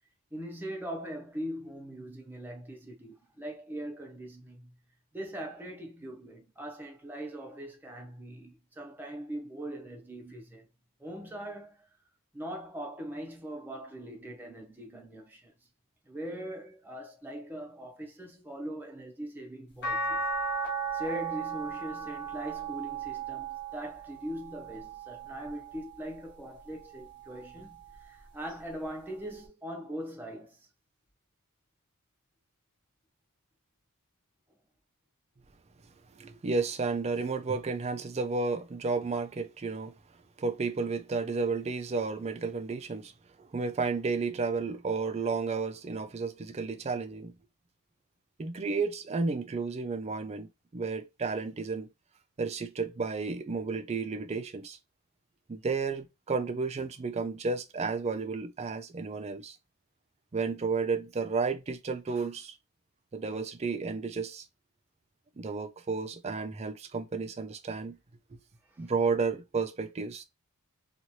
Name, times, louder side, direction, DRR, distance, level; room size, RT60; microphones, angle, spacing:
voice 1, 0.3-4.7 5.1-10.7 11.0-11.9 12.3-15.5 16.1-20.2 20.9-30.7 68.7-68.9, right 1 dB, 10° right, 0.8 m, -41 dB
sound 1, 19.8-26.1 26.7-28.0 29.5-29.6, right 4 dB, 50° left, 1.4 m, -36 dB
voice 2, 36.2-39.9 40.4-43.1 43.4-47.3 48.4-51.9 52.4-54.8 55.5-59.6 60.3-62.5 63.1-64.4 65.4-68.0 68.8-70.2, right 4 dB, 30° right, 0.4 m, -32 dB
3.0 x 2.4 x 2.7 m
head